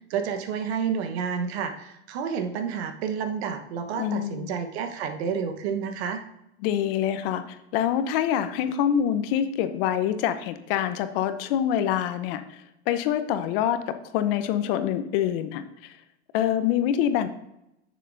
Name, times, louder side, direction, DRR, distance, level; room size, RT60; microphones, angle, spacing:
voice 1, 0.1-6.2, right 6 dB, 65° right, 7 dB, 1.2 m, -30 dB
voice 2, 4.0-4.5 6.6-12.6 12.9-13.8 14.1-15.9 16.3-17.3, left 10 dB, 55° left, 10 dB, 0.8 m, -25 dB
9.8 x 6.7 x 2.6 m, 0.85 s
supercardioid pair, 125°, 34 cm